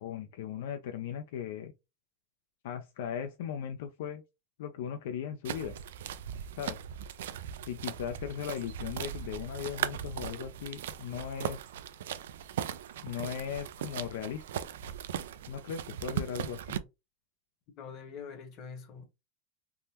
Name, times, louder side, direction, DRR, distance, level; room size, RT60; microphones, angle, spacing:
voice 1, 0.0-1.7 2.6-4.2 4.6-5.8 6.6-6.8 7.7-11.6 13.0-14.4 15.5-16.8, left 8 dB, 70° left, 0.4 m, -38 dB
sound 1, 5.4-16.8, right 9 dB, 85° right, 0.3 m, -38 dB
voice 2, 17.8-19.0, left 6 dB, 40° left, 0.9 m, -44 dB
3.5 x 2.1 x 2.8 m
supercardioid pair, 145°, 0 cm